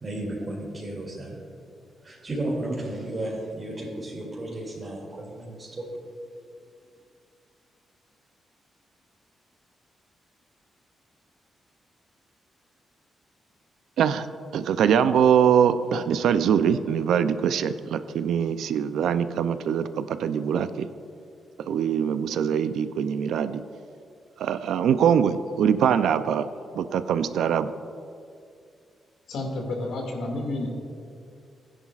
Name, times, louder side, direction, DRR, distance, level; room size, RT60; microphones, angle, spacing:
voice 1, 0.0-1.4 2.0-5.9, right 1 dB, 35° right, -6 dB, 2.5 m, -33 dB
voice 2, 14.5-20.8 21.7-23.6 24.4-26.5 26.7-27.7, right 8 dB, 85° right, 12 dB, 0.4 m, -23 dB
voice 3, 29.3-30.7, left 2 dB, 85° left, 0 dB, 2.1 m, -30 dB
15.5 x 10.0 x 2.4 m, 2.4 s
cardioid pair, 85°, 0 cm